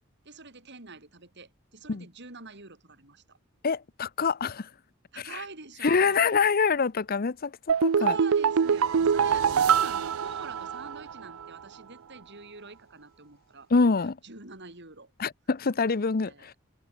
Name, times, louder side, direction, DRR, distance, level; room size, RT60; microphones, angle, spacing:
voice 1, 0.2-3.4 5.1-6.2 8.0-15.1 15.8-16.6, right 3 dB, 55° right, 6.5 m, -45 dB
voice 2, 3.6-4.7 5.8-7.5 7.8-8.1 13.7-14.2 15.2-16.5, left 5 dB, 45° left, 0.7 m, -25 dB
sound 1, 7.7-11.1 11.4-11.5, right 7 dB, 90° right, 0.5 m, -24 dB
head